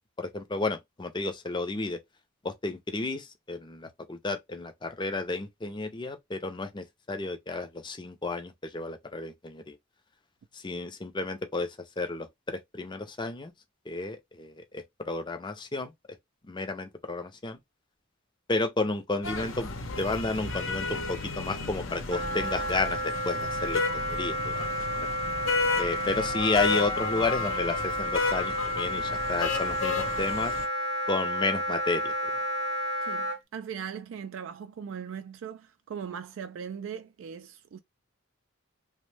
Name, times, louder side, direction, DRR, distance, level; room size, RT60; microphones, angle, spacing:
voice 1, 0.2-2.0 2.4-9.8 10.5-13.5 13.9-15.9 16.5-17.6 18.5-19.7 20.0-25.1 25.8-30.5 31.1-32.1, left 3 dB, 25° left, 0.5 m, -32 dB
sound 1, 19.2-30.7, left 4 dB, 80° left, 0.8 m, -33 dB
Wind instrument woodwind instrument, 22.1-33.4, left 1 dB, 60° right, 0.7 m, -31 dB
voice 2, 33.0-37.8, right 7 dB, 75° right, 0.3 m, -39 dB
3.0 x 2.1 x 3.2 m
head